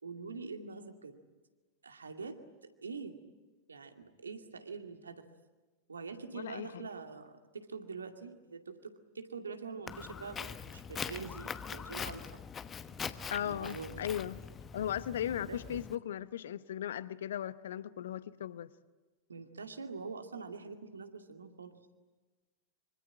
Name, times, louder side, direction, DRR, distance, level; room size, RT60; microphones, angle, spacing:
voice 1, 0.0-1.2 1.8-2.4 2.6-3.2 3.7-5.3 5.9-12.3 13.4-14.1 15.2-15.6 19.3-21.8, right 4 dB, 75° right, 2.3 m, -45 dB
voice 2, 6.3-6.8 13.3-14.4 14.7-18.7, left 10 dB, 60° left, 0.9 m, -37 dB
Walk footsteps, 9.9-16.0, left 6 dB, 20° left, 1.1 m, -43 dB
25.5 x 25.0 x 9.0 m
figure-of-eight pair, 90°, 0 cm